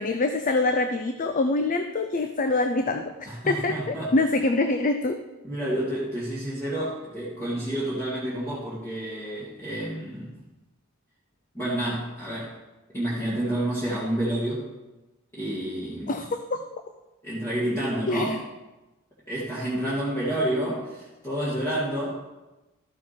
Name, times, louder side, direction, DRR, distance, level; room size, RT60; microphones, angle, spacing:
voice 1, 0.0-5.2 16.1-16.6 18.1-18.4, left 2 dB, 40° left, 7 dB, 0.5 m, -25 dB
voice 2, 3.3-4.1 5.4-10.3 11.5-12.5 12.9-14.7 15.3-16.1 17.2-18.3 19.3-22.1, right 1 dB, 10° left, -10 dB, 2.1 m, -29 dB
13.0 x 6.4 x 4.3 m, 1.1 s
head